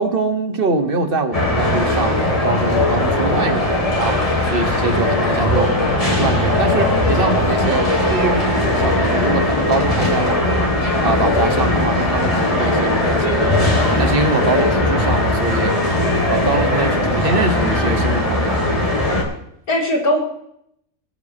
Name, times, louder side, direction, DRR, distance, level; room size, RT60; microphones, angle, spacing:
voice 1, 0.0-3.6 4.0-5.7 6.2-10.7 11.0-15.9 16.3-18.7, right 3 dB, 40° right, 7 dB, 1.6 m, -23 dB
sound 1, 1.3-19.2, left 1 dB, 25° left, 2.9 m, -18 dB
voice 2, 3.0-3.7 19.7-20.2, left 1 dB, 80° left, -1 dB, 3.6 m, -22 dB
21.0 x 9.5 x 3.0 m, 0.72 s
omnidirectional pair, 1.5 m